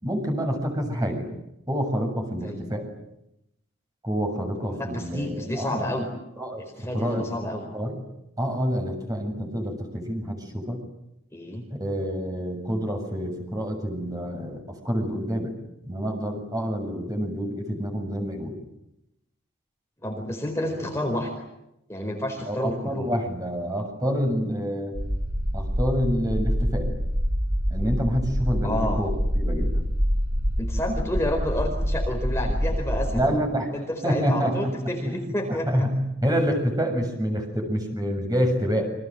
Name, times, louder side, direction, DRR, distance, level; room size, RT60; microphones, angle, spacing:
voice 1, 0.0-1.3 1.7-2.9 4.0-5.8 6.4-6.6 6.9-7.2 7.7-7.9 8.4-10.8 11.7-15.5 15.8-18.6 20.6-20.9 22.5-25.0 25.5-26.9 27.7-29.8 33.1-33.7 34.0-38.9, equal, 20° right, 4 dB, 7.3 m, -27 dB
voice 2, 4.6-6.1 6.6-7.7 11.3-11.6 20.0-21.4 21.9-23.1 28.6-29.0 30.6-33.4 33.7-35.9, left 1 dB, 15° left, 2 dB, 4.5 m, -30 dB
sound 1, 24.9-33.2, equal, 55° right, 7.3 m, -26 dB
30.0 x 25.5 x 7.8 m, 0.85 s
head